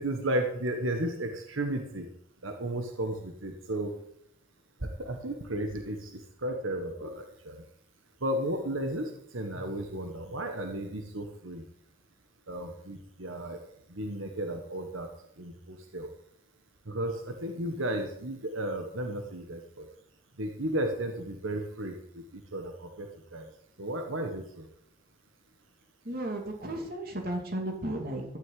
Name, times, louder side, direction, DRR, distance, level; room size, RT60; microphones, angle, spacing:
voice 1, 0.0-2.1 2.4-3.9 4.8-7.6 8.2-11.6 12.5-13.6 13.9-15.1 15.4-16.1 16.9-19.9 20.4-23.5 23.8-24.7, right 1 dB, 90° right, 4 dB, 1.5 m, -34 dB
voice 2, 26.0-28.4, right 1 dB, 50° right, 2 dB, 2.8 m, -34 dB
13.0 x 6.4 x 9.3 m, 0.76 s
head